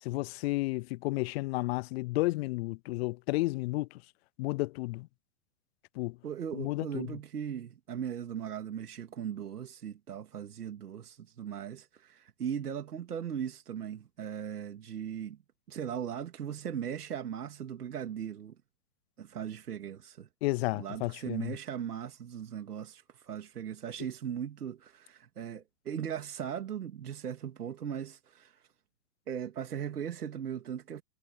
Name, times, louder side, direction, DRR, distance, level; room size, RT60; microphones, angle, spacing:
voice 1, 0.0-4.0 4.4-5.1 5.9-6.2 6.5-7.2 20.4-21.6, left 21 dB, 45° left, 0.6 m, -32 dB
voice 2, 6.2-15.4 15.7-18.6 19.2-20.3 20.7-28.7 29.3-31.0, right 8 dB, 80° right, 2.8 m, -38 dB
hypercardioid pair, 115°, 45 cm